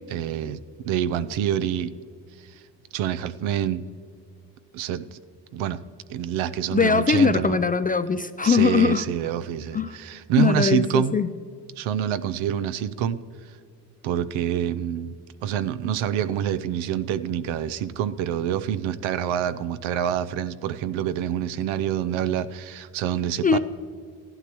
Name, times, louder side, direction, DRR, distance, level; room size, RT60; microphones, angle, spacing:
voice 1, 0.1-0.6 0.9-1.9 2.9-3.8 4.7-5.2 5.5-5.8 6.1-7.6 8.4-11.2 11.8-13.2 14.0-15.1 15.4-23.6, right 10 dB, 75° right, 14 dB, 0.6 m, -26 dB
voice 2, 6.7-9.0 9.7-10.0 10.4-11.3 23.4-23.6, left 5 dB, 20° left, 12 dB, 0.3 m, -21 dB
15.5 x 11.5 x 3.0 m, 2.1 s
supercardioid pair, 65°, 47 cm